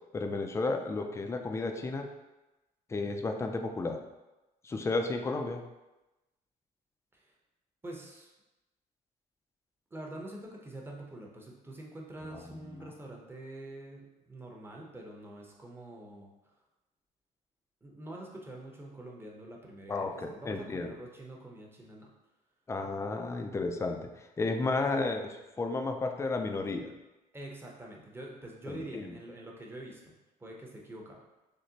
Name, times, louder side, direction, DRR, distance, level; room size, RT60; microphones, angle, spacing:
voice 1, 0.1-2.1 2.9-4.0 4.6-5.6 12.3-12.9 19.9-20.9 22.7-24.1 24.4-26.9 28.7-29.1, left 3 dB, 15° left, 5 dB, 0.4 m, -33 dB
voice 2, 7.8-8.3 9.9-16.3 17.8-22.1 27.3-30.1 30.4-31.2, right 1 dB, 15° right, -1 dB, 0.8 m, -45 dB
6.3 x 2.1 x 2.8 m, 1.0 s
cardioid pair, 110°, 17 cm